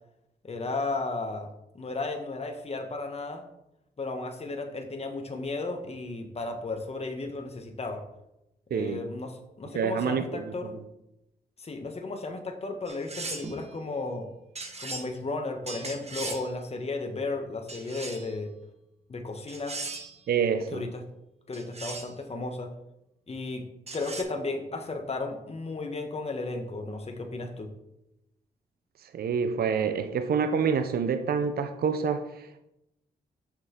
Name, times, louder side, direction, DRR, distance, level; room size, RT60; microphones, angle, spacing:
voice 1, 0.4-1.5 1.7-3.5 4.0-8.0 8.7-10.8 11.6-14.3 14.8-18.5 19.1-19.8 20.7-21.0 21.5-22.7 23.3-23.7 23.9-27.7, left 3 dB, 40° left, 1.1 m, -34 dB
voice 2, 8.7-9.0 9.7-10.8 20.3-20.9 29.0-32.6, right 6 dB, 65° right, 0.6 m, -27 dB
sound 1, 12.9-13.6 14.6-15.1 15.7-16.5 17.7-18.3 19.5-20.2 21.5-22.1 23.9-24.2, right 3 dB, 40° right, 1.5 m, -38 dB
6.5 x 6.4 x 3.7 m
supercardioid pair, 45°, 17 cm